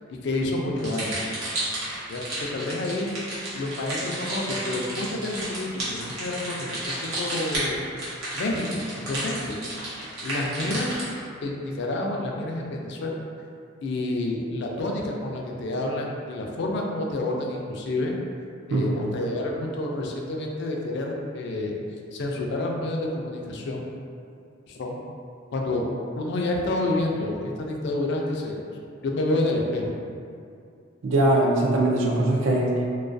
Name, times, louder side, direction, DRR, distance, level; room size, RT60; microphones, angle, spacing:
voice 1, 0.1-1.2 2.1-7.9 8.3-9.6 10.2-11.0 11.4-13.2 13.8-18.1 18.7-21.8 22.1-23.8 24.7-25.0 25.5-25.9 26.2-28.6 29.0-29.9, left 2 dB, 60° left, 0 dB, 0.3 m, -29 dB
sound 1, 0.8-11.2, right 1 dB, 85° right, 0.8 m, -32 dB
voice 2, 31.0-32.8, right 1 dB, 65° right, -1 dB, 0.4 m, -21 dB
2.3 x 2.2 x 2.5 m, 2.4 s
head